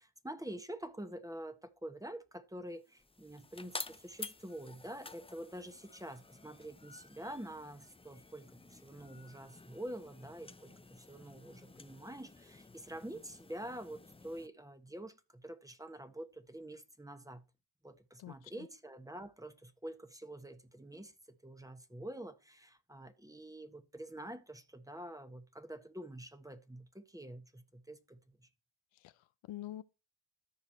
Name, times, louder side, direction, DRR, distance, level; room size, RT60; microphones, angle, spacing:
voice 1, 0.0-17.4 17.8-28.5, right 1 dB, 5° right, 1.3 m, -47 dB
sound 1, 2.8-14.5, left 3 dB, 10° left, 0.6 m, -51 dB
voice 2, 18.2-18.7 28.9-29.8, left 13 dB, 80° left, 0.7 m, -47 dB
13.5 x 4.9 x 4.4 m
supercardioid pair, 55°, 46 cm